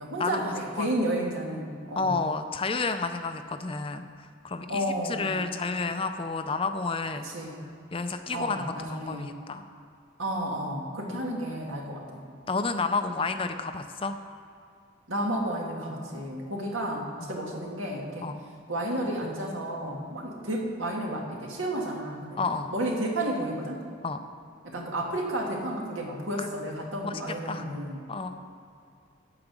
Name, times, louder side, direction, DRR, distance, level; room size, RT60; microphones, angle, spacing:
voice 1, 0.0-2.1 4.7-5.5 7.2-7.7 8.3-9.3 10.2-12.3 15.1-18.3 18.7-22.4 22.7-23.8 24.6-28.1, right 1 dB, 75° right, 0 dB, 1.9 m, -32 dB
voice 2, 2.0-7.2 7.9-9.6 11.1-11.2 12.5-14.2 17.2-17.3 18.2-18.4 22.4-22.7 24.0-24.2 26.4-26.5 27.0-27.2 27.5-27.6 28.1-28.4, left 4 dB, 25° left, 8 dB, 0.4 m, -31 dB
8.8 x 8.7 x 6.1 m, 2.5 s
head